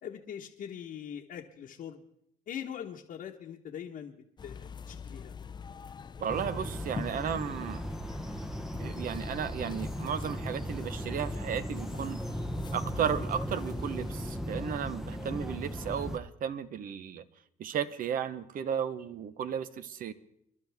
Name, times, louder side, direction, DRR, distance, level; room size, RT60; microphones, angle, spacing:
voice 1, 0.0-2.0 2.5-4.1 4.4-5.3 15.1-15.4, left 9 dB, 55° left, -1 dB, 1.2 m, -42 dB
sound 1, 4.4-14.4, left 6 dB, 25° left, 0.5 m, -45 dB
voice 2, 6.2-7.8 8.8-12.2 12.7-17.2 17.6-20.1, right 8 dB, 55° right, 13 dB, 1.0 m, -34 dB
sound 2, 6.3-16.2, equal, ahead, 0.8 m, -37 dB
28.0 x 11.5 x 3.5 m, 0.76 s
cardioid pair, 110°, 17 cm